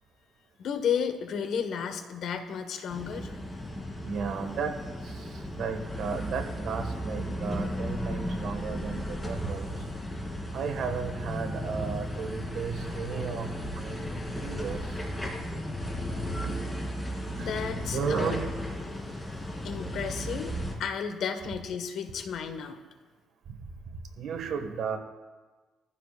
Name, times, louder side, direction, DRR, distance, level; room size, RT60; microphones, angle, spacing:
voice 1, 0.6-3.4 17.4-18.3 19.6-22.8, left 7 dB, 70° left, 7 dB, 1.5 m, -33 dB
sound 1, 2.9-20.7, equal, 10° left, 3.0 m, -35 dB
voice 2, 4.0-9.7 10.5-15.0 16.4-16.7 17.4-17.5 17.9-18.5 23.5-23.6 23.9-25.0, right 6 dB, 70° right, 5 dB, 1.8 m, -34 dB
21.5 x 14.5 x 2.5 m, 1.3 s
cardioid pair, 90°, 0 cm